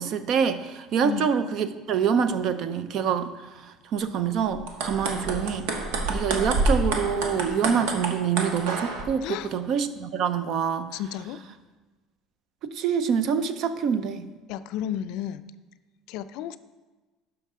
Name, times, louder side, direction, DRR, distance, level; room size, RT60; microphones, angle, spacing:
voice 1, 0.0-3.3 3.9-5.7 6.1-10.9 12.6-14.3, right 7 dB, 45° right, 11 dB, 0.5 m, -26 dB
sound 1, 4.5-9.0, right 2 dB, 85° right, 1.2 m, -28 dB
voice 2, 10.9-11.4 14.5-15.4 16.1-16.6, left 10 dB, 65° left, 13 dB, 0.3 m, -32 dB
12.0 x 5.8 x 3.7 m, 1.3 s
cardioid pair, 155°, 0 cm